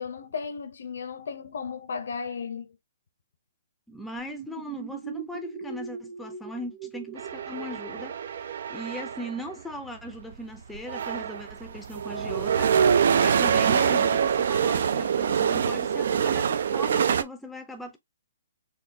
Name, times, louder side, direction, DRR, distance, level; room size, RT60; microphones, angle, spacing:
voice 1, 0.0-2.8, left 5 dB, 75° left, 0.7 m, -35 dB
voice 2, 3.9-18.0, equal, 5° left, 0.5 m, -39 dB
sound 1, 4.2-9.6, right 6 dB, 45° right, 1.2 m, -41 dB
sound 2, 7.2-9.4 10.3-10.4 10.7-17.2, right 7 dB, 65° right, 0.4 m, -25 dB
4.3 x 2.3 x 2.7 m
hypercardioid pair, 160°, 0 cm